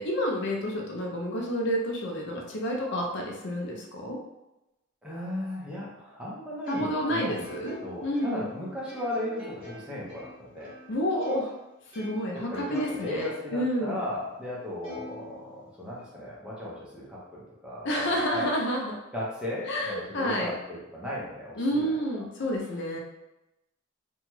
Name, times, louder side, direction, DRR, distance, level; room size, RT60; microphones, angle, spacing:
voice 1, 0.0-4.2 6.7-8.5 10.9-11.6 11.9-14.0 17.8-18.9 19.7-20.5 21.6-23.0, equal, 60° left, 0 dB, 0.5 m, -29 dB
voice 2, 5.0-7.5 7.8-10.7 12.3-18.5 19.1-22.0, left 1 dB, 5° right, -7 dB, 0.7 m, -36 dB
Plucked string instrument, 6.7-11.6 11.9-13.6 14.1-14.2 14.8-16.0, left 2 dB, 25° right, 1.2 m, -46 dB
2.8 x 2.3 x 3.0 m, 0.94 s
head